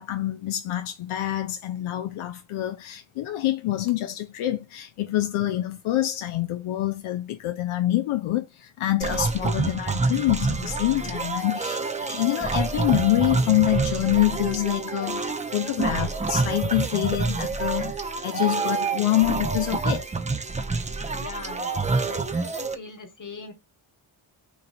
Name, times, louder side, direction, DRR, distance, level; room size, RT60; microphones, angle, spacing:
voice 1, 0.0-20.1, left 15 dB, 80° left, 0.6 m, -26 dB
sound 1, 9.0-22.7, right 3 dB, 15° right, 0.4 m, -27 dB
voice 2, 21.1-21.7 22.1-23.5, left 4 dB, 40° left, 1.3 m, -40 dB
3.0 x 2.6 x 4.3 m
cardioid pair, 65°, 49 cm